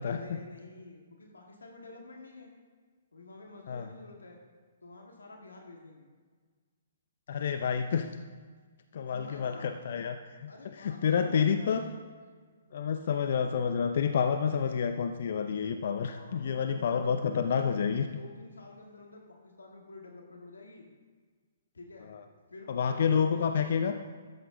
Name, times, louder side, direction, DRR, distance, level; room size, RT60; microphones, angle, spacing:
voice 1, 0.0-2.5 3.1-4.4 4.8-6.0 9.1-9.8 10.5-12.0 16.0-17.4 17.7-17.9 18.2-20.9 21.7-22.1 22.5-23.4, left 3 dB, 80° left, 1 dB, 1.8 m, -49 dB
voice 2, 7.3-8.1 8.9-10.5 10.8-11.8 12.7-18.1 22.1-22.2 22.7-24.0, left 7 dB, 60° left, 7 dB, 0.6 m, -29 dB
13.0 x 8.0 x 3.8 m, 1.6 s
figure-of-eight pair, 125°, 0 cm